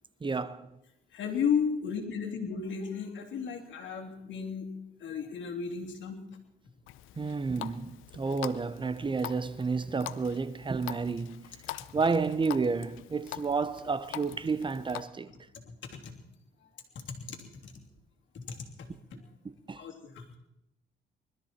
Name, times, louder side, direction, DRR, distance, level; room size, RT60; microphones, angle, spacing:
voice 1, 0.2-0.8 7.2-11.4 11.9-15.3 19.4-19.8, right 4 dB, 25° right, 0.8 m, -31 dB
voice 2, 1.1-4.7 5.0-6.2 15.9-16.1 17.1-17.7 18.3-18.9 19.8-20.4, left 6 dB, 70° left, 3.0 m, -34 dB
Water tap faucet, 6.9-15.0, left 14 dB, 90° left, 0.7 m, -44 dB
21.0 x 13.0 x 4.4 m
cardioid pair, 90°, 20 cm